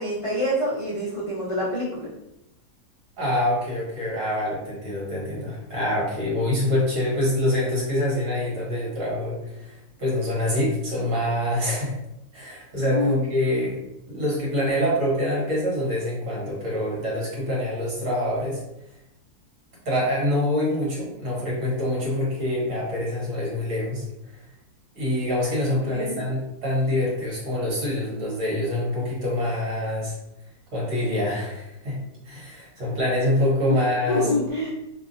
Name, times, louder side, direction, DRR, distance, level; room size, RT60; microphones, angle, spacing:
voice 1, 0.0-2.1 12.8-13.2 25.9-26.2 33.7-33.8 34.1-34.7, left 1 dB, 60° left, -9 dB, 0.3 m, -26 dB
voice 2, 3.2-12.0 12.3-18.6 19.8-24.0 24.9-30.1 30.7-34.3, left 1 dB, 55° right, -5 dB, 1.5 m, -25 dB
2.8 x 2.4 x 2.5 m, 0.87 s
omnidirectional pair, 1.7 m